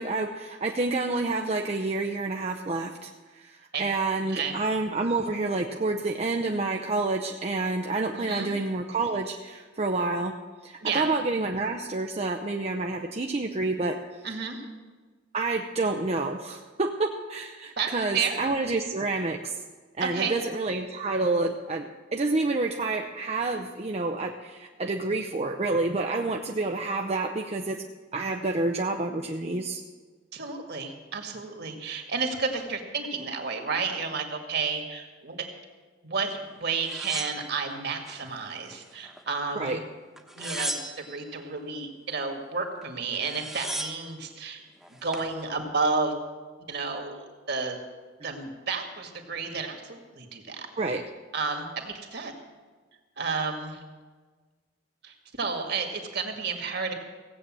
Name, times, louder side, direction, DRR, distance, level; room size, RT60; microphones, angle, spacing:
voice 1, 0.0-10.3 10.6-14.0 15.3-19.6 20.0-27.8 28.1-29.8 39.6-39.8 50.8-51.0, right 3 dB, 35° right, 3 dB, 0.6 m, -28 dB
voice 2, 4.3-4.6 8.1-8.5 10.8-11.1 14.2-14.7 17.8-18.4 20.0-20.4 30.3-35.4 36.0-39.8 40.4-44.6 45.0-46.1 46.7-47.8 48.2-50.7 51.3-52.3 53.2-53.8 55.0-56.9, right 4 dB, 60° right, 4 dB, 2.0 m, -31 dB
sound 1, 36.8-38.2 38.6-39.4 40.2-41.3 42.8-42.9 43.1-44.1 44.8-45.3, right 1 dB, ahead, 1.1 m, -36 dB
16.5 x 8.3 x 7.5 m, 1.4 s
head